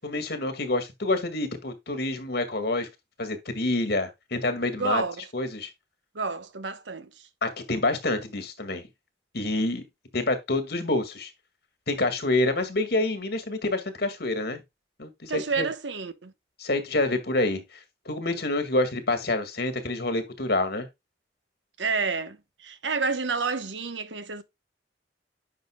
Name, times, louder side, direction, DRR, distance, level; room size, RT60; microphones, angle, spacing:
voice 1, 0.0-2.9 3.2-5.0 5.3-5.7 7.4-8.8 9.3-9.8 10.1-11.3 11.9-14.6 15.0-15.7 16.6-17.6 18.1-20.9, left 2 dB, 60° left, 1.9 m, -27 dB
voice 2, 4.8-5.1 6.1-7.1 15.3-16.3 21.8-22.4 22.6-24.4, right 4 dB, 90° right, 1.1 m, -29 dB
9.4 x 5.9 x 2.2 m
head